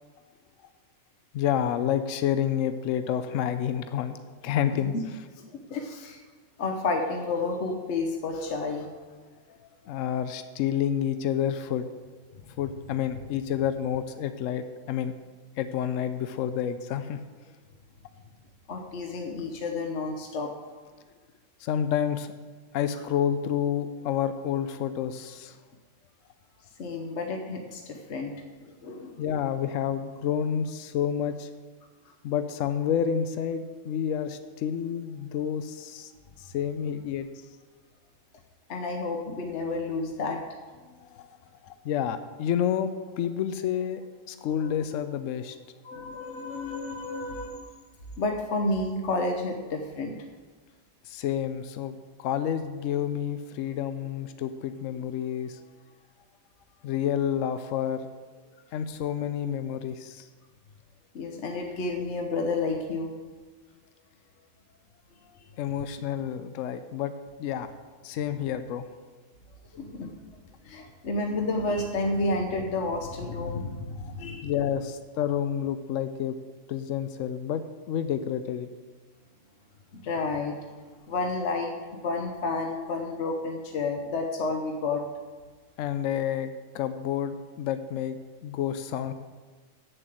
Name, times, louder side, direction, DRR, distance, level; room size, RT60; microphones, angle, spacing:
voice 1, 1.3-4.2 4.4-4.9 9.8-11.9 12.6-15.1 15.6-17.2 21.6-22.3 22.7-25.6 29.2-31.5 32.2-36.1 36.4-37.3 41.0-41.3 41.6-44.0 44.3-45.6 51.1-55.7 56.8-58.1 58.7-60.3 65.6-67.1 67.4-67.7 68.0-68.9 74.0-74.1 74.4-76.4 76.7-78.7 85.8-89.1, left 9 dB, 80° left, 10 dB, 0.9 m, -29 dB
voice 2, 5.5-6.2 6.6-8.9 18.7-20.5 26.8-28.3 28.7-29.3 38.7-40.4 44.6-44.7 45.8-47.7 48.2-50.1 61.1-63.1 69.7-70.2 70.6-74.5 79.9-80.6 81.1-85.0, left 3 dB, 60° left, 3 dB, 1.2 m, -30 dB
8.1 x 7.6 x 7.5 m, 1.4 s
omnidirectional pair, 1.3 m